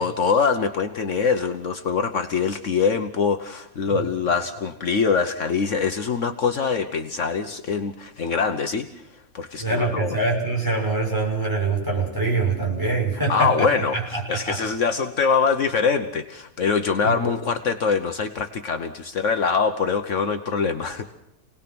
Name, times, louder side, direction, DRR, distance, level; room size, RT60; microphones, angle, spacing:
voice 1, 0.0-8.9 9.3-10.2 13.3-21.1, left 5 dB, 60° left, 7 dB, 1.3 m, -23 dB
voice 2, 9.6-14.6 17.0-17.3, right 3 dB, 15° right, -1 dB, 6.1 m, -24 dB
28.5 x 19.0 x 6.1 m, 0.84 s
omnidirectional pair, 1.4 m